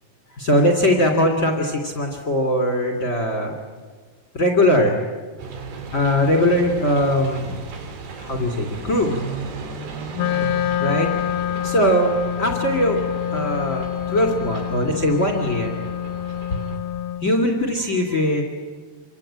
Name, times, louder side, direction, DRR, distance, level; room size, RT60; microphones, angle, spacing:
voice 1, 0.4-3.5 4.3-5.0 5.9-7.6 8.2-9.2 10.8-11.1 11.6-13.0 13.3-15.7 17.2-18.4, left 1 dB, 25° left, 2 dB, 2.5 m, -20 dB
sound 1, 5.4-16.8, right 4 dB, 85° right, 4.8 m, -35 dB
Wind instrument woodwind instrument, 10.1-17.3, left 11 dB, 75° left, 2.7 m, -26 dB
27.0 x 25.0 x 8.9 m, 1.5 s
omnidirectional pair, 4.6 m